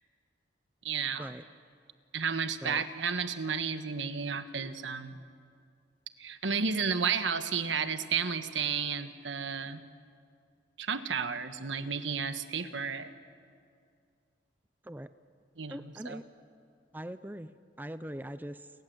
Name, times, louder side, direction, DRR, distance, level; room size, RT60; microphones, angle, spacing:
voice 1, 0.8-1.2 2.1-5.2 6.2-9.8 10.8-13.1 15.6-16.2, right 6 dB, 80° right, 10 dB, 1.4 m, -32 dB
voice 2, 15.7-16.2 16.9-18.7, right 1 dB, 10° right, 13 dB, 0.6 m, -41 dB
30.0 x 23.5 x 7.9 m, 2.3 s
head